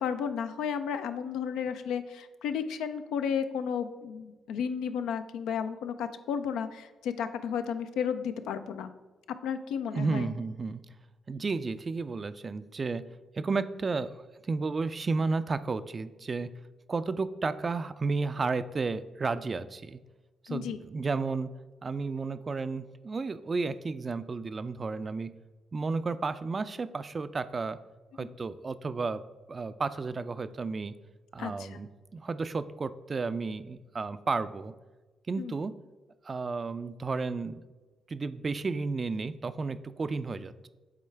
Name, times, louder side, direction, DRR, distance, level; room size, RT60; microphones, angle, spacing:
voice 1, 0.0-8.9 9.3-10.3 20.5-20.8 28.2-28.3 31.4-31.8 35.4-35.5, left 7 dB, 80° left, 9 dB, 0.4 m, -33 dB
voice 2, 9.9-10.8 11.3-13.1 13.4-16.5 16.9-20.0 20.4-21.5 21.8-25.3 25.7-27.8 28.2-29.2 29.5-31.0 31.3-34.7 35.3-35.7 36.2-37.6 38.1-40.7, right 4 dB, 40° right, 13 dB, 0.3 m, -32 dB
8.5 x 3.7 x 3.3 m, 1.2 s
hypercardioid pair, 50°, 0 cm